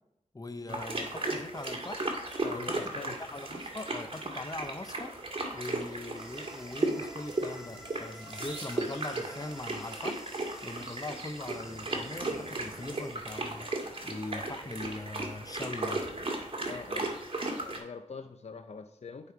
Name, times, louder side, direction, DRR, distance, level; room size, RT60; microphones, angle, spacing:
voice 1, 0.3-2.0 2.5-2.8 3.3-5.1 5.5-10.2 10.6-13.7 14.0-16.0, left 2 dB, 30° left, 9 dB, 0.8 m, -41 dB
sound 1, 0.7-17.8, right 2 dB, 45° right, 2.1 m, -36 dB
voice 2, 2.4-3.2 16.6-17.1 17.5-19.3, left 5 dB, 55° left, 8 dB, 0.6 m, -44 dB
sound 2, 6.1-13.2, equal, 5° right, 1.6 m, -52 dB
10.5 x 5.3 x 4.7 m, 0.82 s
cardioid pair, 50°, 13 cm